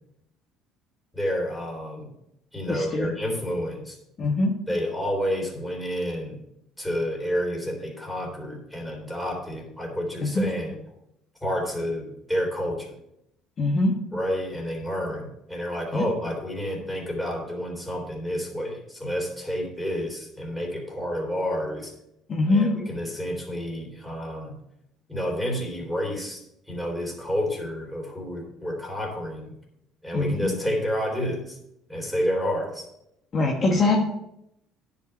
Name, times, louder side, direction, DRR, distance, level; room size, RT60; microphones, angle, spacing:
voice 1, 1.1-2.1 2.5-4.0 4.7-6.4 6.8-10.8 11.4-13.0 14.1-21.9 22.5-24.6 25.1-29.5 30.0-31.6 31.9-32.9, equal, 5° left, -1 dB, 3.7 m, -29 dB
voice 2, 2.7-3.1 4.2-4.5 10.3-10.4 13.6-13.9 15.9-16.0 22.3-22.7 30.1-30.4 33.3-34.0, left 2 dB, 35° left, -1 dB, 1.6 m, -22 dB
10.0 x 5.4 x 6.7 m, 0.81 s
cardioid pair, 125°, 0 cm